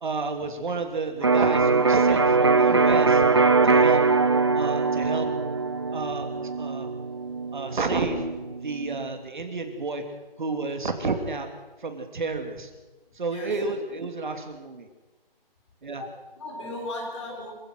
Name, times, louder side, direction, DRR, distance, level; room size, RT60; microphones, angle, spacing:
voice 1, 0.0-3.2 3.6-4.0 4.5-5.3 5.9-6.9 7.5-8.3 8.5-10.0 10.4-11.5 11.8-12.7 13.2-14.9 15.8-16.0, right 3 dB, 50° right, 6 dB, 2.9 m, -31 dB
Electric guitar, 1.2-9.0, right 4 dB, 25° right, 0.6 m, -22 dB
voice 2, 13.3-13.8 15.9-17.5, left 2 dB, 30° left, 0 dB, 5.6 m, -37 dB
27.0 x 16.0 x 6.3 m, 1.2 s
hypercardioid pair, 170°, 30 cm